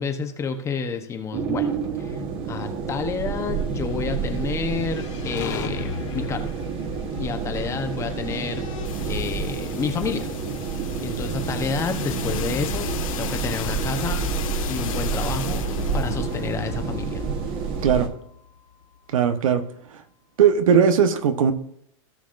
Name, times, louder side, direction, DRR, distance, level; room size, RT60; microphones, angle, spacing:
voice 1, 0.0-1.7 2.0-2.2 2.5-6.5 7.2-8.6 9.1-10.3 11.0-12.9 13.2-14.2 14.7-15.7 15.9-17.2, left 5 dB, 15° left, 6 dB, 0.9 m, -29 dB
sound 1, 1.3-18.1, right 5 dB, 30° right, 1.3 m, -29 dB
sound 2, 4.3-8.6, left 9 dB, 60° left, 1.4 m, -37 dB
sound 3, 7.1-19.0, left 8 dB, 80° left, 1.5 m, -36 dB
voice 2, 19.1-19.6 20.4-21.5, right 7 dB, 75° right, 9 dB, 1.1 m, -18 dB
16.5 x 6.2 x 2.6 m, 0.70 s
hypercardioid pair, 145°, 17 cm